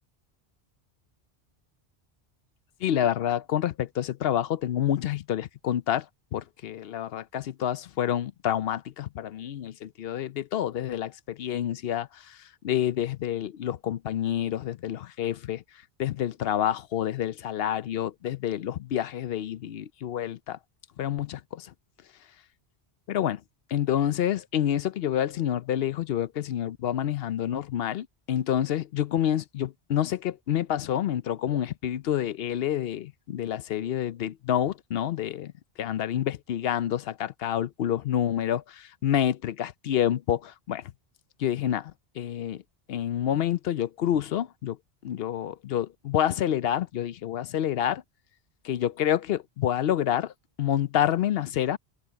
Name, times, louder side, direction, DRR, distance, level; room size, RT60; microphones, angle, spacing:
voice 1, 2.8-6.1 6.3-15.6 16.0-20.6 21.0-21.7 23.1-23.4 23.7-35.5 35.8-40.9 41.4-42.6 42.9-44.8 45.0-48.0 48.6-50.3 50.6-51.8, left 10 dB, 70° left, 0.8 m, -28 dB
omnidirectional pair, 1.1 m